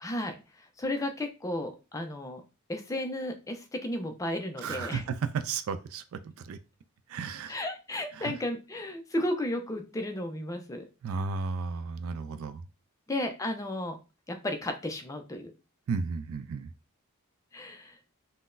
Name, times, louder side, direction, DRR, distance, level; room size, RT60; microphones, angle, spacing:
voice 1, 0.0-2.4 2.7-5.0 7.5-10.8 13.1-14.0 14.3-15.5 17.5-18.0, left 1 dB, 15° left, 0.3 m, -34 dB
voice 2, 4.6-6.6 7.1-7.6 8.1-8.3 11.0-12.7 15.9-16.7, right 5 dB, 70° right, 0.3 m, -34 dB
3.8 x 2.1 x 2.5 m
head